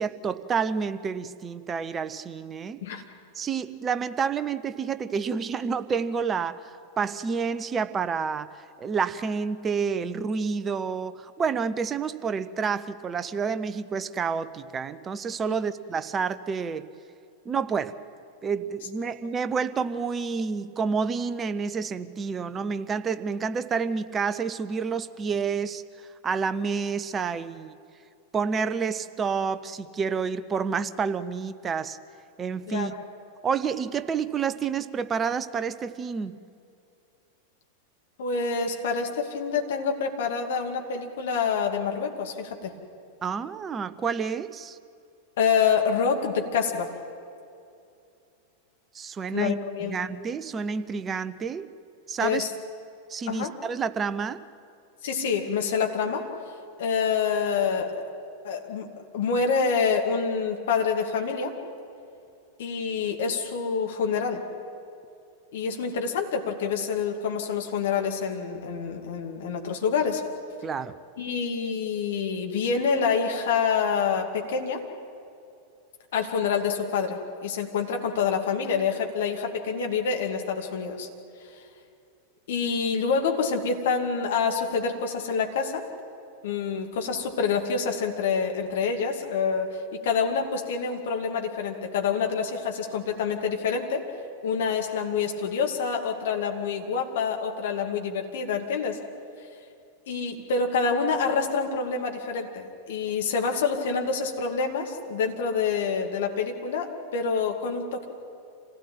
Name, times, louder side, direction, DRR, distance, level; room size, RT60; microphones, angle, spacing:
voice 1, 0.0-2.8 3.3-8.5 8.8-16.9 17.4-17.9 18.4-25.8 26.2-27.7 28.3-32.0 32.4-32.9 33.4-36.4 43.2-44.8 48.9-51.7 52.1-52.4 53.1-54.4 70.6-70.9, right 5 dB, 20° right, 13 dB, 0.8 m, -29 dB
voice 2, 38.2-42.7 45.4-46.9 49.3-50.0 52.2-52.5 53.3-53.5 55.0-56.2 56.8-58.0 58.4-58.9 59.1-61.5 62.6-64.4 65.5-70.2 71.2-74.8 76.1-81.1 82.5-85.8 86.4-94.0 94.4-99.0 100.1-108.1, left 5 dB, 55° left, 2 dB, 2.6 m, -27 dB
27.0 x 17.0 x 9.1 m, 2.6 s
figure-of-eight pair, 90°, 0 cm